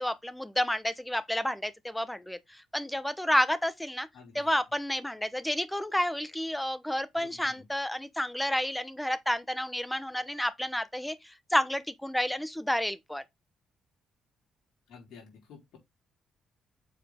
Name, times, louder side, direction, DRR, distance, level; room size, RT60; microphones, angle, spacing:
voice 1, 0.0-4.1 4.3-13.2, left 1 dB, 5° left, 0.9 m, -30 dB
voice 2, 4.1-4.5 7.2-7.3 14.9-15.8, left 6 dB, 80° left, 4.4 m, -51 dB
7.0 x 4.4 x 3.6 m
cardioid pair, 90°, 0 cm